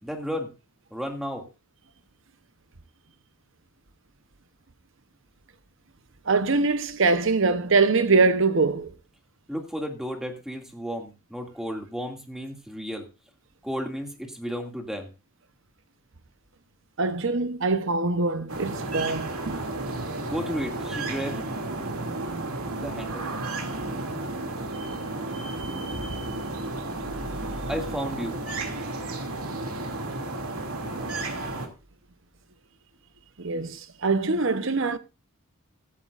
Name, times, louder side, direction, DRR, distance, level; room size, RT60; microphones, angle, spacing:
voice 1, 0.0-0.5 0.9-1.4 9.5-13.1 13.6-15.1 20.2-21.4 22.8-23.3 27.7-28.4, equal, ahead, 2.3 m, -33 dB
voice 2, 6.3-8.9 17.0-19.6 33.4-35.0, right 3 dB, 60° right, 1.0 m, -23 dB
sound 1, 18.5-31.7, right 2 dB, 90° right, 2.6 m, -32 dB
15.5 x 13.5 x 2.5 m
head